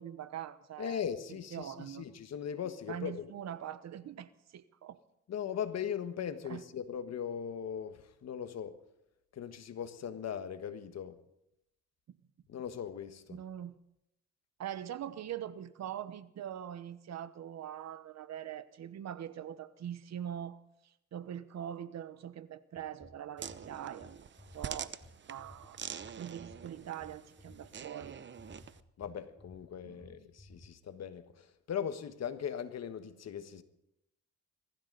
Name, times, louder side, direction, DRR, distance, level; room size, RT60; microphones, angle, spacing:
voice 1, 0.0-1.0 1.5-2.1 2.9-5.0 6.5-6.6 12.1-12.2 13.3-13.8 14.6-24.1 24.5-24.9 25.3-25.8 26.2-28.2 29.8-30.3, right 10 dB, 60° right, 1.0 m, -43 dB
voice 2, 0.8-3.3 5.3-8.8 9.3-11.2 12.5-13.4 29.0-33.6, left 8 dB, 60° left, 1.5 m, -39 dB
sound 1, 22.8-30.7, left 1 dB, 5° left, 1.3 m, -57 dB
sound 2, 23.4-28.8, right 7 dB, 40° right, 0.8 m, -45 dB
23.0 x 15.0 x 4.0 m
cardioid pair, 90°, 30 cm